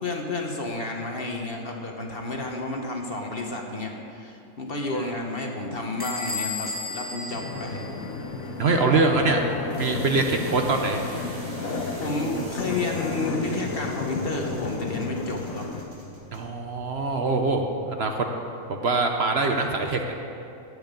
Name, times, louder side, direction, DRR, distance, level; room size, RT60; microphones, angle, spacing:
voice 1, 0.0-7.8 12.0-15.6, left 2 dB, 45° left, 1 dB, 1.4 m, -31 dB
Bell / Squeak, 6.0-8.5, left 3 dB, 5° left, 1.7 m, -34 dB
sound 1, 7.3-15.8, left 4 dB, 75° left, 1.4 m, -32 dB
sound 2, 7.5-17.6, equal, 75° right, 2.9 m, -44 dB
voice 2, 8.6-9.4 9.8-11.0 16.3-18.3 18.7-20.0, right 3 dB, 55° right, 4 dB, 1.0 m, -24 dB
14.5 x 9.4 x 5.3 m, 2.7 s
omnidirectional pair, 1.4 m